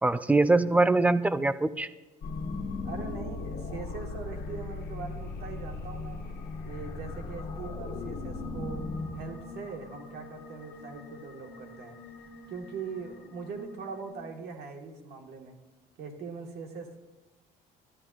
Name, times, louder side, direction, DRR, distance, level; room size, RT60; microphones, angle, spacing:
voice 1, 0.0-1.9, right 2 dB, 10° right, 13 dB, 0.4 m, -23 dB
sound 1, 2.2-14.1, left 3 dB, 65° left, 1.4 m, -39 dB
voice 2, 2.8-6.2 6.6-8.9 9.1-12.0 12.5-15.6 16.0-17.0, right 5 dB, 75° right, 2 dB, 1.6 m, -41 dB
12.5 x 12.0 x 2.5 m, 1.1 s
cardioid pair, 110°, 17 cm